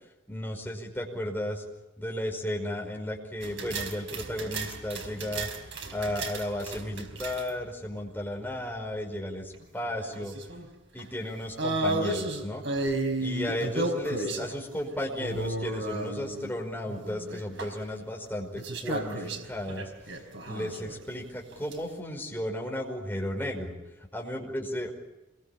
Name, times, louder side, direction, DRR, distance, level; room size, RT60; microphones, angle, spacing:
voice 1, 0.3-1.6 2.0-5.5 5.9-10.3 10.9-12.6 13.2-19.9 20.4-24.9, left 1 dB, 10° left, 0 dB, 5.2 m, -34 dB
sound 1, 3.4-7.6 9.5-10.7 11.0-11.1 11.6-14.5 15.2-16.5 16.9-17.7 18.6-21.0 21.5-21.7, right 2 dB, 65° right, 4.7 m, -33 dB
26.5 x 22.5 x 8.6 m, 0.97 s
head